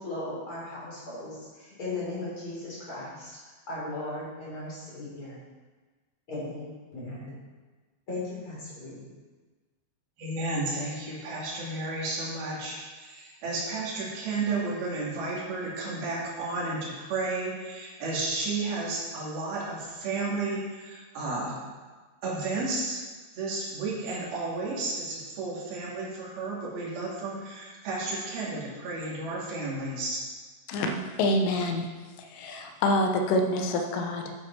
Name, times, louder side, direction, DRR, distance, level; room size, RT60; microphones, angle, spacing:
voice 1, 0.0-3.4 3.7-5.4 6.3-7.4 8.1-9.1, left 2 dB, 30° left, -7 dB, 4.1 m, -37 dB
voice 2, 10.2-21.6 22.2-23.0 23.3-30.2, right 3 dB, 55° right, -5 dB, 4.0 m, -32 dB
voice 3, 30.7-31.8 32.3-34.3, left 1 dB, 80° left, 4 dB, 3.5 m, -26 dB
10.5 x 8.6 x 4.6 m, 1.3 s
omnidirectional pair, 5.6 m